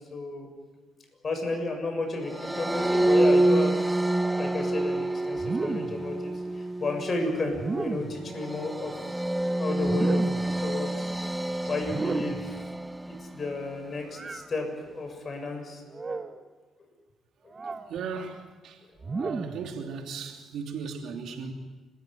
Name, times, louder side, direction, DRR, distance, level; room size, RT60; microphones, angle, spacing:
voice 1, 0.1-0.5 1.2-3.8 4.3-9.0 9.6-11.1 11.7-12.6 13.1-15.8 16.1-16.2 17.4-17.5, left 2 dB, 40° left, 6.8 m, -32 dB
sound 1, 2.3-13.6, right 1 dB, 10° right, 0.7 m, -27 dB
sound 2, 5.4-6.1 7.5-8.2 9.8-10.6 11.8-12.5 14.1-14.5 15.9-16.4 17.5-17.9 19.0-19.7, right 4 dB, 30° right, 1.2 m, -33 dB
voice 2, 17.9-18.8 19.2-21.5, right 5 dB, 75° right, 3.0 m, -36 dB
30.0 x 14.5 x 9.3 m
cardioid pair, 90°, 0 cm